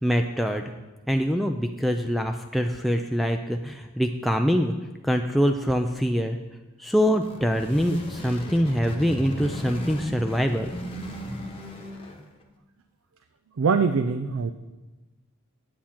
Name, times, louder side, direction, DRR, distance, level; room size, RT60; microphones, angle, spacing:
voice 1, 0.0-0.6 1.1-4.7 5.0-6.4 6.8-10.7, equal, ahead, 3 dB, 0.3 m, -24 dB
sound 1, 7.1-12.4, equal, 25° left, 1.0 m, -36 dB
voice 2, 13.6-14.5, right 5 dB, 70° right, 9 dB, 0.4 m, -23 dB
9.5 x 8.6 x 4.4 m, 1.1 s
head